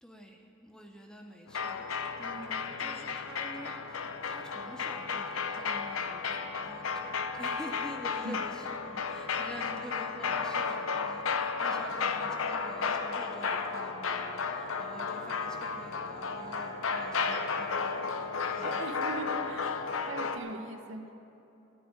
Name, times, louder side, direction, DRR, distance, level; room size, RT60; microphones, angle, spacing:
voice 1, 0.0-18.8, equal, 5° left, 3 dB, 0.7 m, -48 dB
sound 1, 1.5-20.4, left 5 dB, 85° left, 0.7 m, -33 dB
voice 2, 18.6-19.7 20.1-21.1, right 2 dB, 75° right, 7 dB, 0.9 m, -39 dB
13.5 x 5.8 x 9.7 m, 2.9 s
head